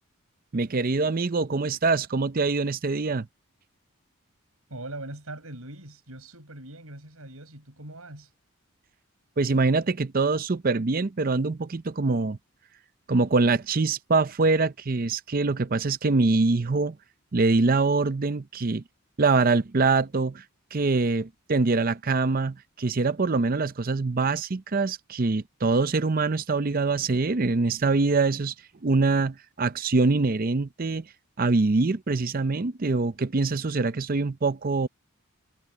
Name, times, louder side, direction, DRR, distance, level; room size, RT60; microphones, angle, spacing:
voice 1, 0.5-3.3 9.4-12.4 13.1-17.0 17.3-18.8 19.2-20.4 20.7-28.5 28.8-31.1 31.4-34.9, right 3 dB, 40° right, 0.6 m, -24 dB
voice 2, 4.7-8.3, right 1 dB, 75° right, 7.1 m, -41 dB
head